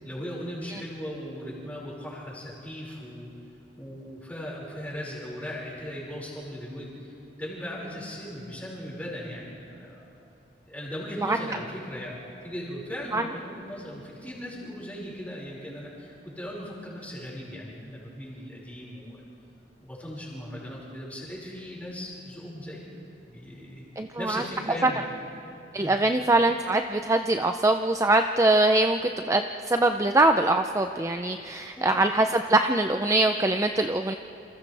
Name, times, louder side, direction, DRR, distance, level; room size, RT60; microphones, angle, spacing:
voice 1, 0.0-3.3 3.8-7.1 7.4-10.0 10.7-19.2 19.8-22.9 23.3-23.9 24.2-25.0 25.8-26.0 31.8-31.9, equal, 10° left, -5 dB, 5.4 m, -38 dB
voice 2, 24.0-24.4 24.8-24.9 25.7-34.1, right 2 dB, 15° right, 6 dB, 0.5 m, -23 dB
28.0 x 27.5 x 3.4 m, 2.7 s
head